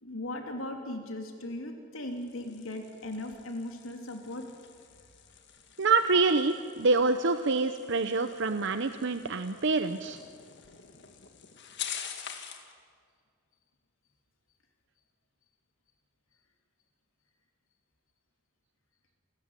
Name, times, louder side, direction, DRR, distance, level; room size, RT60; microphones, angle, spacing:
voice 1, 0.0-4.4, left 1 dB, 75° left, 3 dB, 3.1 m, -38 dB
sound 1, 2.0-12.7, left 8 dB, 55° left, 2.0 m, -46 dB
voice 2, 5.8-10.2, right 3 dB, 55° right, 10 dB, 0.7 m, -26 dB
28.5 x 13.5 x 9.7 m, 2.1 s
head